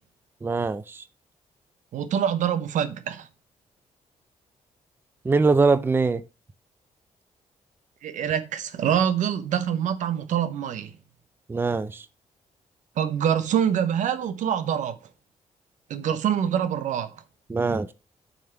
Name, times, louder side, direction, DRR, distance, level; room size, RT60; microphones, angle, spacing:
voice 1, 0.4-1.0 5.2-6.2 11.5-12.1 17.5-17.9, right 4 dB, 15° right, 0.4 m, -22 dB
voice 2, 1.9-3.3 8.0-10.9 13.0-15.0 15.9-17.1, right 9 dB, 75° right, 0.8 m, -25 dB
7.2 x 3.3 x 5.8 m
cardioid pair, 95°, 13 cm